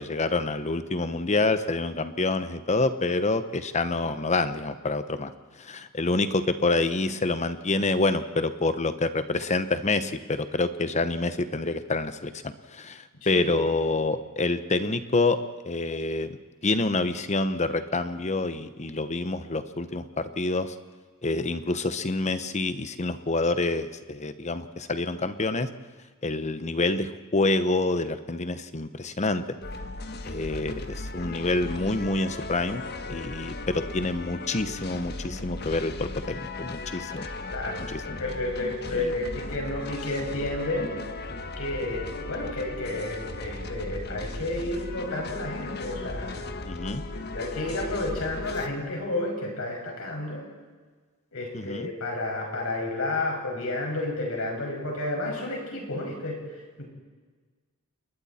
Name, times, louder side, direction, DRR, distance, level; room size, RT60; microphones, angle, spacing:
voice 1, 0.0-5.3 5.6-15.4 15.6-16.4 16.6-20.7 21.2-25.7 26.2-29.6 30.2-32.8 33.1-37.3 37.9-38.2 38.9-39.1 46.7-47.0 51.5-51.9, left 2 dB, 30° left, 11 dB, 0.9 m, -27 dB
voice 2, 13.2-13.5 37.5-40.9 41.6-46.4 47.3-50.4 51.3-56.4 56.8-56.9, left 2 dB, 70° left, 0 dB, 6.0 m, -31 dB
sound 1, 29.6-48.7, left 2 dB, 50° left, 1.3 m, -37 dB
29.5 x 20.5 x 4.3 m, 1.4 s
head